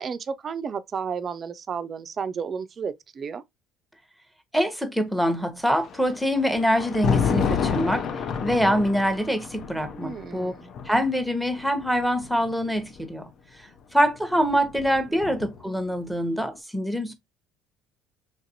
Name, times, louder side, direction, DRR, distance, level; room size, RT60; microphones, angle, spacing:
voice 1, 0.0-3.4 9.9-10.7 15.1-15.2, right 6 dB, 40° right, 0.3 m, -32 dB
voice 2, 4.5-8.1 8.4-10.5 10.9-13.3 13.9-17.1, equal, 5° right, 0.8 m, -24 dB
Thunder, 5.8-13.0 14.1-15.8, left 6 dB, 55° left, 0.4 m, -30 dB
3.2 x 2.5 x 2.7 m
hypercardioid pair, 75°, 0 cm